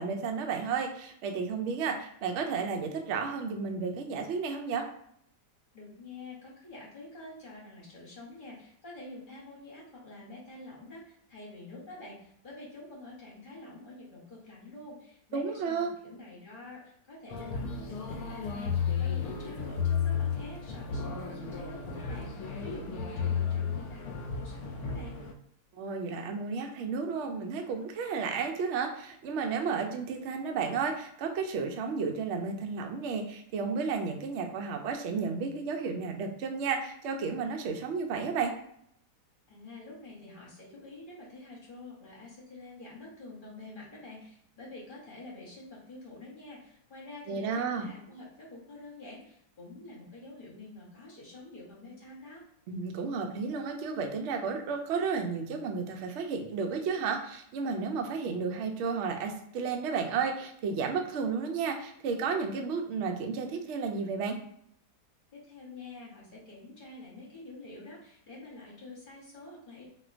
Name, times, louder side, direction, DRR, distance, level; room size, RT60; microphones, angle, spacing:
voice 1, 0.0-4.8 15.3-15.9 25.8-38.5 47.3-47.9 52.7-64.4, right 5 dB, 90° right, 3 dB, 0.6 m, -32 dB
voice 2, 5.7-25.1 39.5-52.4 65.3-69.8, left 2 dB, 40° left, -5 dB, 0.9 m, -47 dB
sound 1, 17.3-25.3, left 6 dB, 70° left, 1.0 m, -33 dB
4.2 x 2.2 x 2.4 m, 0.69 s
omnidirectional pair, 1.8 m